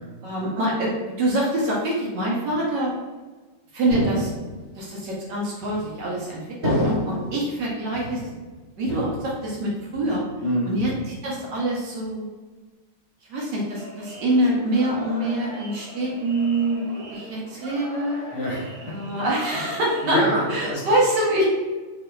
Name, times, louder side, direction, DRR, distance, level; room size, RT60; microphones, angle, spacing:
voice 1, 0.2-2.9 3.7-4.3 4.8-8.2 8.8-10.2 10.7-10.9 11.2-12.3 13.3-18.2 18.9-20.2 20.5-21.4, right 1 dB, 65° right, -4 dB, 1.2 m, -25 dB
sound 1, 3.9-4.8 5.6-6.1 6.6-7.4 7.9-8.5 8.9-9.6 9.9-10.4 10.8-11.4, equal, 15° right, 1.0 m, -29 dB
voice 2, 10.4-10.8 18.3-18.9 20.0-20.8, equal, 65° left, -4 dB, 1.2 m, -25 dB
sound 2, 13.7-20.7, right 1 dB, 85° right, 1.8 m, -41 dB
4.5 x 2.7 x 2.2 m, 1.3 s
omnidirectional pair, 2.2 m